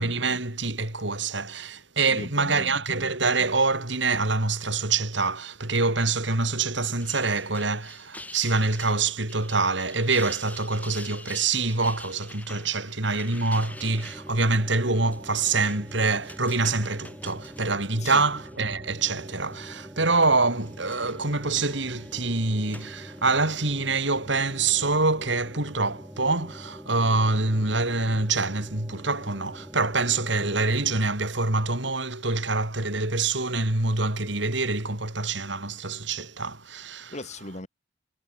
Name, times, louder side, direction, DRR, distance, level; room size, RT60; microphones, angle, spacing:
voice 1, 0.0-37.1, right 3 dB, 65° right, 3.9 m, -25 dB
voice 2, 2.1-2.8 18.0-18.2 37.1-37.7, left 2 dB, 35° left, 2.8 m, -37 dB
sound 1, 6.8-18.6 19.0-19.6 20.4-23.6, left 2 dB, 10° left, 3.6 m, -47 dB
sound 2, 13.7-31.0, equal, 10° right, 1.9 m, -44 dB
head